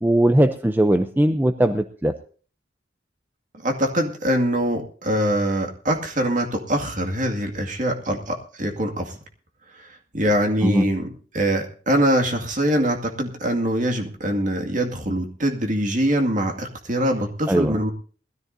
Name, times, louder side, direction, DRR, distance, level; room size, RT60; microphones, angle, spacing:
voice 1, 0.0-2.2 10.6-10.9 17.5-17.8, right 1 dB, 10° right, 8 dB, 0.5 m, -19 dB
voice 2, 3.6-9.2 9.8-9.9 10.1-17.9, equal, 45° right, 3 dB, 2.1 m, -23 dB
20.5 x 13.5 x 2.7 m, 0.40 s
head